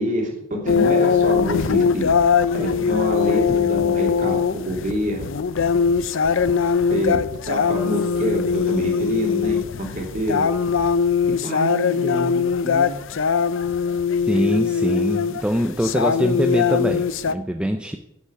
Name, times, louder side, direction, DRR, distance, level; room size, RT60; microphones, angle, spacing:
voice 1, 0.0-5.3 6.9-7.2 7.5-10.5 11.4-13.0, equal, 40° right, 0 dB, 3.2 m, -27 dB
sound 1, 0.7-17.3, left 6 dB, 60° left, 0.5 m, -21 dB
voice 2, 14.3-18.0, equal, 5° right, 6 dB, 0.5 m, -23 dB
8.3 x 8.3 x 8.2 m, 0.81 s
head